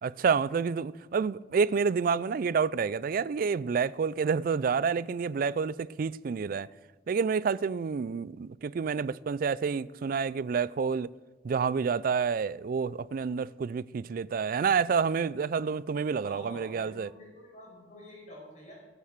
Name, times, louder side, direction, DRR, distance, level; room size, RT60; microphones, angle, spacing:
voice 1, 0.0-6.7 7.1-11.1 11.4-17.1, right 5 dB, 50° right, 0.3 m, -29 dB
voice 2, 16.2-18.8, equal, 40° left, 5.3 m, -48 dB
17.5 x 6.8 x 6.6 m
head